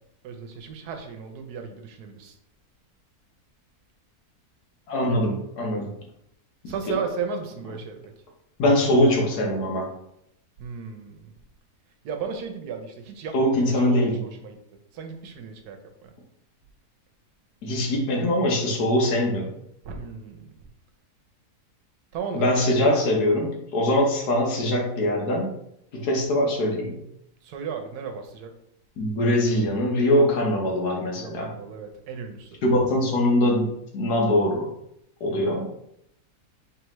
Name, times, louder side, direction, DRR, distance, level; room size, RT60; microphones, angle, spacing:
voice 1, 0.2-2.3 6.7-8.0 10.6-11.3 12.0-14.6 14.9-16.1 19.8-20.5 22.1-22.9 27.4-28.5 31.1-32.5 35.3-35.6, right 6 dB, 75° right, 5 dB, 1.2 m, -35 dB
voice 2, 4.9-5.9 6.6-6.9 8.6-9.9 13.3-14.2 17.6-19.5 22.3-25.5 25.9-26.9 29.0-31.5 32.6-34.7 35.2-35.7, left 1 dB, 75° left, 0 dB, 1.5 m, -22 dB
4.6 x 3.4 x 3.0 m, 0.77 s
omnidirectional pair, 1.7 m